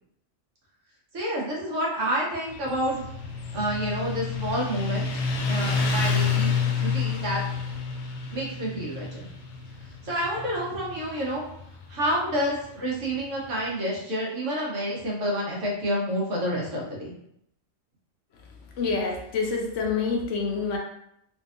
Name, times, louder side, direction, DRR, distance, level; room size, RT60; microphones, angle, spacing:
voice 1, 1.1-3.1 3.5-5.1 5.4-6.5 6.8-7.4 8.3-9.3 10.0-11.4 11.9-17.1, equal, 70° right, -4 dB, 1.3 m, -29 dB
Motorcycle, 2.5-13.6, left 5 dB, 85° left, 0.4 m, -29 dB
voice 2, 18.8-20.8, left 4 dB, 70° left, 1 dB, 0.9 m, -27 dB
3.8 x 2.6 x 2.5 m, 0.75 s
omnidirectional pair, 1.4 m